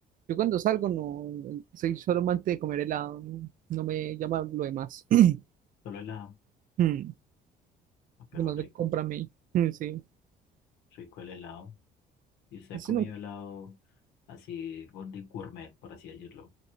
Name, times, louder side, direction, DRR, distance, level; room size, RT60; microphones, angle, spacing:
voice 1, 0.3-5.4 6.8-7.1 8.3-9.3 9.5-10.0 12.9-13.1, right 12 dB, 55° right, 0.5 m, -28 dB
voice 2, 5.8-6.4 8.3-8.7 10.9-11.7 12.5-13.8 14.3-16.5, left 7 dB, 85° left, 1.8 m, -42 dB
5.1 x 3.1 x 3.2 m
cardioid pair, 110°, 17 cm